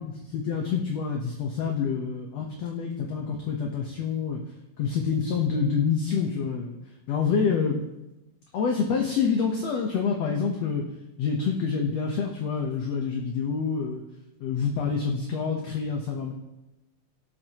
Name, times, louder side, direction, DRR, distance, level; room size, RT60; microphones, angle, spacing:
voice 1, 0.0-4.4 4.8-6.8 7.1-7.8 8.5-10.9 11.2-14.0 14.4-16.3, left 6 dB, 60° left, 1 dB, 1.9 m, -27 dB
25.0 x 13.0 x 3.0 m, 0.99 s
omnidirectional pair, 4.0 m